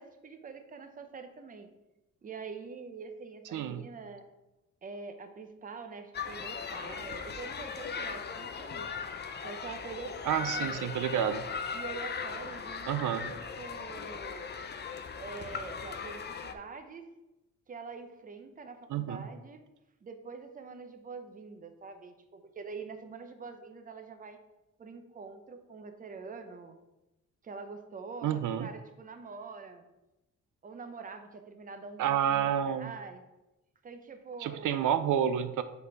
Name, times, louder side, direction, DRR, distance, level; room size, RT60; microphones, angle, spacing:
voice 1, 0.0-1.7 2.2-4.2 4.8-8.9 9.4-10.9 11.7-14.5 15.2-17.1 17.7-19.6 20.0-24.4 24.8-26.8 27.4-29.9 30.6-33.2 33.8-34.9, right 4 dB, 25° right, 7 dB, 0.6 m, -45 dB
voice 2, 3.5-3.9 10.2-11.4 12.9-13.3 18.9-19.2 28.2-28.7 32.0-32.9 34.4-35.6, right 9 dB, 80° right, 11 dB, 0.5 m, -29 dB
sound 1, 6.1-16.5, left 6 dB, 35° left, 0.4 m, -38 dB
5.3 x 4.1 x 5.7 m, 0.97 s
wide cardioid pair, 170°, 31 cm